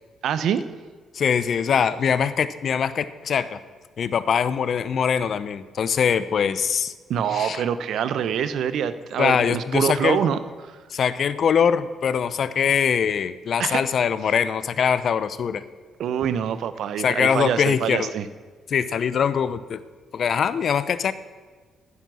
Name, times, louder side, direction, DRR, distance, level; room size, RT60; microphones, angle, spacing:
voice 1, 0.2-0.6 7.1-10.4 10.7-10.8 13.6-13.8 16.0-18.3, right 8 dB, 75° right, 13 dB, 0.8 m, -25 dB
voice 2, 1.1-3.6 4.0-6.9 7.3-7.6 9.2-10.2 10.9-15.6 17.0-18.1 18.7-19.8 20.1-21.1, left 7 dB, 55° left, 14 dB, 0.7 m, -22 dB
15.5 x 9.7 x 6.3 m, 1.5 s
cardioid pair, 90°, 0 cm